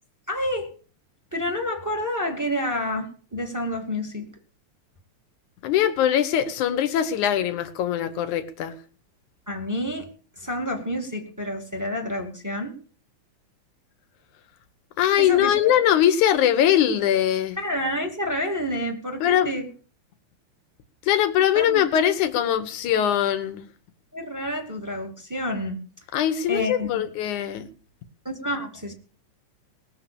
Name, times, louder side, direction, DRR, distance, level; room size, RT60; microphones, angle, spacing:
voice 1, 0.3-0.7 1.3-4.3 9.5-10.1 10.4-12.8 15.2-15.8 17.6-19.7 21.5-21.8 24.1-25.8 26.5-27.1 28.2-28.9, left 1 dB, 5° right, 2.1 m, -29 dB
voice 2, 5.6-8.8 15.0-17.6 19.2-19.5 21.1-23.7 26.1-27.7, left 10 dB, 80° left, 2.7 m, -21 dB
19.5 x 7.0 x 7.0 m
omnidirectional pair, 3.4 m